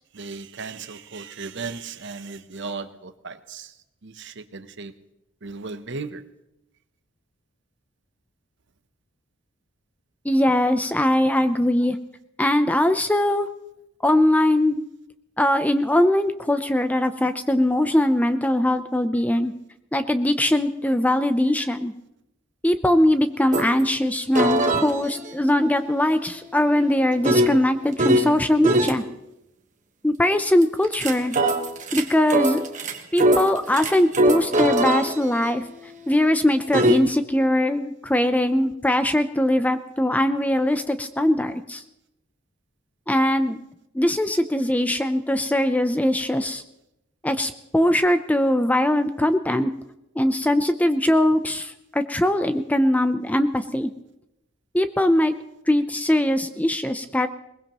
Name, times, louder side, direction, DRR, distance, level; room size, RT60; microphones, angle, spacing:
voice 1, 0.2-3.7 4.0-4.9 5.4-6.2, right 4 dB, 60° right, 11 dB, 0.9 m, -36 dB
voice 2, 10.2-12.0 12.4-13.5 14.0-14.8 15.4-19.5 19.9-21.9 22.6-29.0 30.0-31.4 31.9-32.6 33.1-35.6 36.1-41.8 43.1-43.6 43.9-46.6 47.2-49.7 50.2-53.9 54.7-55.4 55.7-57.3, left 1 dB, 5° left, 9 dB, 0.6 m, -21 dB
sound 1, 23.5-23.7 24.3-28.3 28.6-29.0 30.6-37.0, right 1 dB, 35° right, 1.3 m, -23 dB
21.5 x 20.0 x 3.0 m, 0.88 s
head